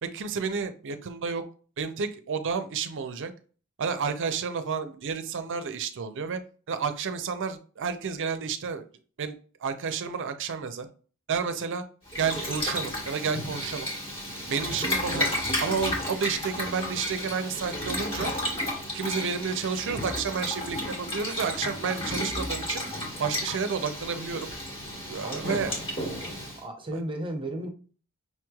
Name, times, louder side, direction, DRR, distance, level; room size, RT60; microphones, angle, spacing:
voice 1, 0.0-1.4 1.8-3.3 3.8-6.4 6.7-8.9 9.2-9.4 9.6-10.9 11.3-11.8 12.2-13.9 14.5-15.3 15.6-18.3 18.9-22.8 23.2-24.5 25.1-25.7 26.9-27.0, right 5 dB, 55° right, 9 dB, 0.5 m, -31 dB
Boiling, 12.1-26.6, left 1 dB, 25° left, 1.5 m, -32 dB
voice 2, 25.2-25.7 26.6-27.7, right 1 dB, 25° right, 3 dB, 0.7 m, -34 dB
5.6 x 3.1 x 2.3 m, 0.39 s
head